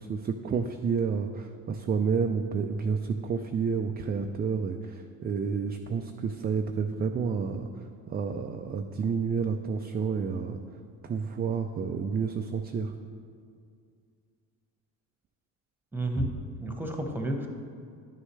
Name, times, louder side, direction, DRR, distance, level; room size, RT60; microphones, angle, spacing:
voice 1, 0.0-7.7 8.1-10.6 11.0-12.9, right 5 dB, 25° right, 5 dB, 0.4 m, -30 dB
voice 2, 15.9-16.3 16.6-17.5, right 1 dB, 5° right, 3 dB, 1.2 m, -30 dB
10.5 x 6.4 x 3.2 m, 2.3 s
supercardioid pair, 80°, 39 cm